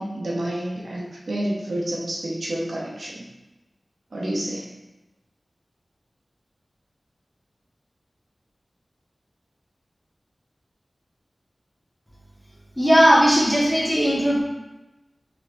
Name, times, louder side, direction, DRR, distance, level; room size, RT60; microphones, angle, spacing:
voice 1, 0.0-3.3 4.1-4.7, right 1 dB, 80° right, -5 dB, 0.7 m, -29 dB
voice 2, 12.8-14.4, equal, 5° left, -8 dB, 1.1 m, -17 dB
3.2 x 3.1 x 2.5 m, 1.0 s
wide cardioid pair, 75°, 0 cm